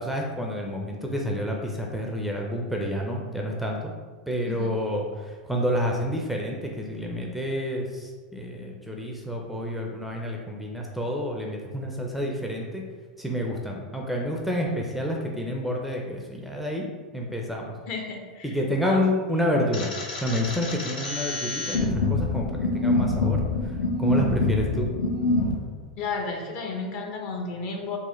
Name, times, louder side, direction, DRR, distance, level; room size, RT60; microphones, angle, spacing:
voice 1, 0.0-3.9 4.3-12.8 13.2-16.9 17.1-17.8 18.4-19.9 20.2-24.9 25.4-25.5, equal, ahead, -1 dB, 0.4 m, -29 dB
voice 2, 17.9-18.6 18.8-19.0 19.3-19.4 26.0-28.0, left 4 dB, 45° left, 2 dB, 0.7 m, -32 dB
sound 1, 19.7-25.5, left 3 dB, 85° left, 0.7 m, -26 dB
3.8 x 2.5 x 3.1 m, 1.5 s
hypercardioid pair, 105°, 4 cm